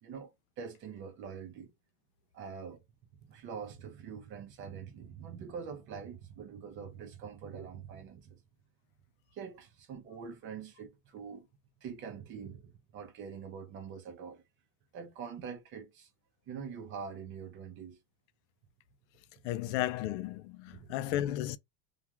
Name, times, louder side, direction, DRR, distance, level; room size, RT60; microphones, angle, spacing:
voice 1, 0.0-1.7 2.3-2.8 3.3-8.4 9.3-11.5 11.8-14.4 14.9-16.1 16.5-18.0 19.6-19.7 20.7-21.0, right 6 dB, 35° right, 0.6 m, -44 dB
voice 2, 19.4-21.6, left 13 dB, 75° left, 0.5 m, -34 dB
2.4 x 2.3 x 2.8 m
cardioid pair, 165°, 36 cm